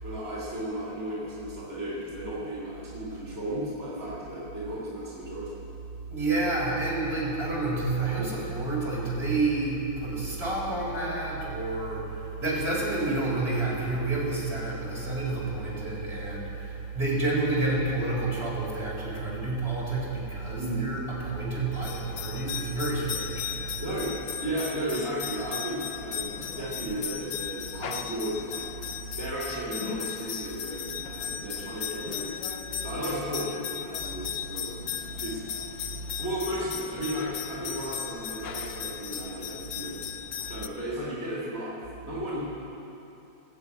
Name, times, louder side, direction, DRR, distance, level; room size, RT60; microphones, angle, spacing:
voice 1, 0.0-5.5 17.1-17.3 20.6-20.9 23.8-28.7 29.2-32.4 32.8-35.4 36.2-40.0 40.5-42.4, right 1 dB, 10° right, -8 dB, 3.6 m, -34 dB
voice 2, 6.1-23.8, right 2 dB, 30° right, -6 dB, 4.6 m, -29 dB
sound 1, 21.7-40.7, left 9 dB, 85° left, 1.5 m, -37 dB
20.5 x 7.8 x 8.7 m, 2.9 s
omnidirectional pair, 2.1 m